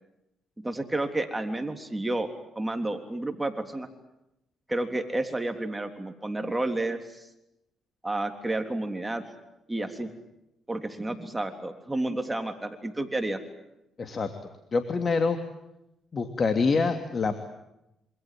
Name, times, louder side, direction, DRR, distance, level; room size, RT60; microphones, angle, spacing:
voice 1, 0.6-2.3 2.5-3.9 4.7-7.3 8.0-9.2 9.7-10.1 10.7-13.4, right 2 dB, 15° right, 6 dB, 3.5 m, -30 dB
voice 2, 14.0-14.3 14.7-15.4 16.1-17.3, left 4 dB, 40° left, 7 dB, 2.9 m, -25 dB
27.5 x 26.0 x 7.8 m, 0.87 s
cardioid pair, 90°, 0 cm